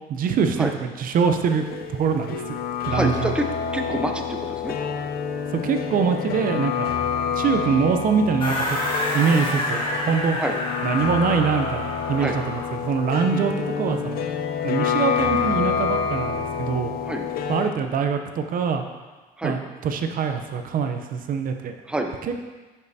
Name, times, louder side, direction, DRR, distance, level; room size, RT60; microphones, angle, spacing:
voice 1, 0.1-0.7 1.0-2.6 2.9-3.3 5.5-6.9 7.3-8.8 9.1-10.4 10.8-14.3 14.6-16.9 17.5-18.8 19.4-21.7 22.3-22.4, right 6 dB, 55° right, 6 dB, 0.6 m, -24 dB
sound 1, 1.5-17.7, left 7 dB, 60° left, 0.5 m, -28 dB
voice 2, 2.9-3.5 3.7-4.8 10.4-10.6 12.2-12.4 13.3-13.5 17.0-17.3 19.4-19.6 21.9-22.1, right 1 dB, 5° right, 3 dB, 0.6 m, -27 dB
sound 2, 8.4-12.8, left 1 dB, 30° left, 1.5 m, -28 dB
10.5 x 5.4 x 2.7 m, 1.3 s
cardioid pair, 110°, 17 cm